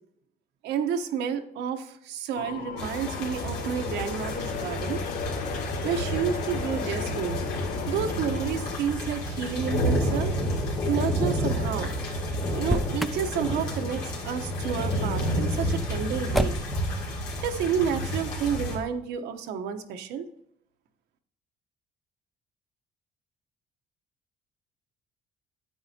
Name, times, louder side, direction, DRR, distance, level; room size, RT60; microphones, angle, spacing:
voice 1, 0.6-5.0 5.8-7.4 7.9-10.3 10.9-11.9 12.5-16.6 17.4-20.3, right 7 dB, 80° right, 7 dB, 1.0 m, -30 dB
sound 1, 2.3-8.8, left 8 dB, 50° left, 0.6 m, -35 dB
sound 2, 2.8-18.8, equal, 85° left, 2.6 m, -30 dB
Motor vehicle (road), 12.5-13.3 16.3-16.9, equal, ahead, 0.3 m, -27 dB
9.5 x 8.7 x 2.8 m, 0.74 s
cardioid pair, 110°, 17 cm